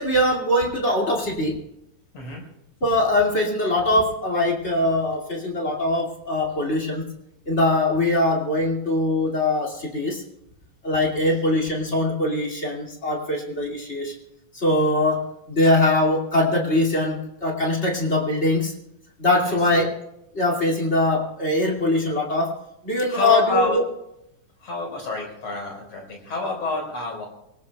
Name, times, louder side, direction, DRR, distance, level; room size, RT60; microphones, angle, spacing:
voice 1, 0.0-1.6 2.8-7.1 7.5-10.2 10.8-14.1 14.5-18.7 19.2-19.9 20.3-22.5 22.8-23.8, left 1 dB, 25° left, 0 dB, 2.2 m, -22 dB
voice 2, 23.1-23.8 24.6-27.3, left 2 dB, 50° left, 0 dB, 5.6 m, -28 dB
25.0 x 19.0 x 2.3 m, 0.84 s
omnidirectional pair, 3.7 m